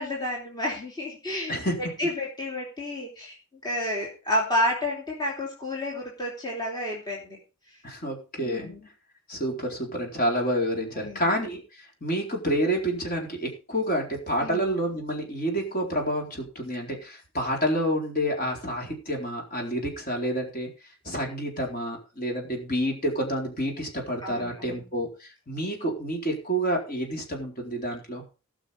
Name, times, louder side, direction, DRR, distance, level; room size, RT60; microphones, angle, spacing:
voice 1, 0.0-1.6 2.0-3.4 3.6-7.4 8.4-8.8 11.0-11.2 14.4-14.7 24.2-24.8, left 1 dB, 20° left, -2 dB, 3.1 m, -30 dB
voice 2, 7.8-8.7 9.3-20.7 21.0-28.2, equal, 40° left, 1 dB, 4.2 m, -29 dB
18.0 x 6.3 x 5.3 m, 0.33 s
head